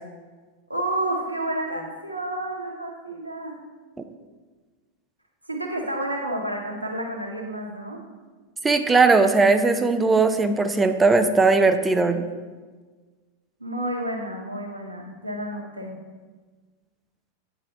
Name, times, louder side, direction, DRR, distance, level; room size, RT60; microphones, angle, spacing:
voice 1, 0.7-3.6 5.5-8.0 13.6-16.0, right 1 dB, 85° right, 1 dB, 0.9 m, -30 dB
voice 2, 8.6-12.2, right 3 dB, 15° right, 8 dB, 0.4 m, -19 dB
8.5 x 4.7 x 2.8 m, 1.4 s
figure-of-eight pair, 90°, 0 cm